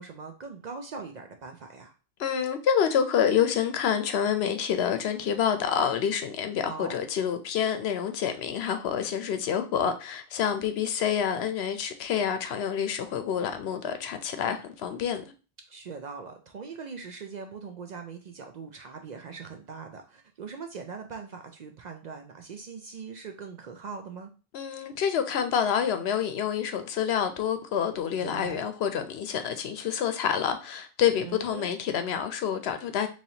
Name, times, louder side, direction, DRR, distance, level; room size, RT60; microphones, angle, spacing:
voice 1, 0.0-1.9 6.6-7.0 15.7-24.3 28.2-28.6 31.2-31.7, right 5 dB, 55° right, 0.5 m, -41 dB
voice 2, 2.2-15.2 24.5-33.1, left 8 dB, 80° left, 0.8 m, -27 dB
4.1 x 3.1 x 2.8 m
omnidirectional pair, 1.1 m